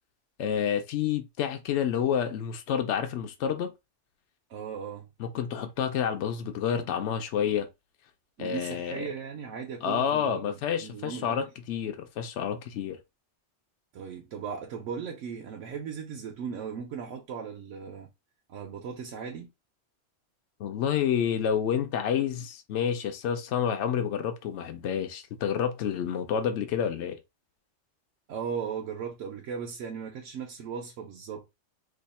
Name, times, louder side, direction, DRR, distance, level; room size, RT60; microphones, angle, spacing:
voice 1, 0.4-3.7 5.2-7.7 8.4-9.1 9.8-13.0 20.6-27.2, left 8 dB, 70° left, 0.9 m, -29 dB
voice 2, 4.5-5.1 8.4-11.4 13.9-18.1 18.5-19.5 28.3-31.5, right 7 dB, 90° right, 1.0 m, -37 dB
2.8 x 2.3 x 4.0 m
omnidirectional pair, 1.2 m